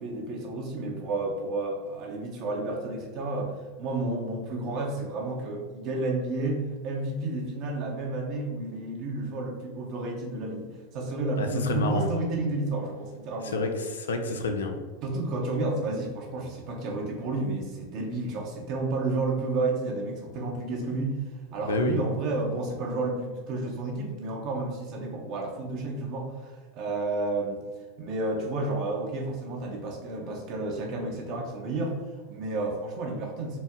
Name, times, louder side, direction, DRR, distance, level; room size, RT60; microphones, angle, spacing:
voice 1, 0.0-13.6 15.0-27.6 28.0-33.6, right 2 dB, 50° right, -1 dB, 0.8 m, -31 dB
voice 2, 11.4-12.1 13.5-14.8 21.6-22.0, left 2 dB, 85° left, 6 dB, 0.5 m, -28 dB
4.1 x 2.1 x 3.6 m, 1.4 s
hypercardioid pair, 100°, 0 cm